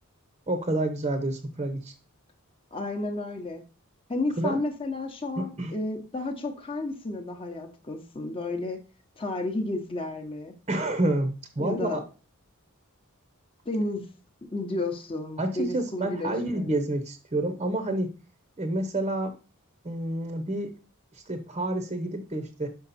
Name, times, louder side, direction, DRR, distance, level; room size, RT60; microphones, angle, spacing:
voice 1, 0.5-1.9 4.4-4.6 5.4-5.7 10.7-12.0 15.4-18.1 18.6-19.3 19.8-20.7 21.1-22.7, right 1 dB, 25° right, 8 dB, 0.8 m, -29 dB
voice 2, 2.7-3.6 4.1-8.8 9.2-10.5 11.6-12.0 13.7-14.0 14.5-16.6, left 2 dB, 25° left, 3 dB, 0.9 m, -32 dB
5.9 x 5.7 x 4.1 m, 0.35 s
head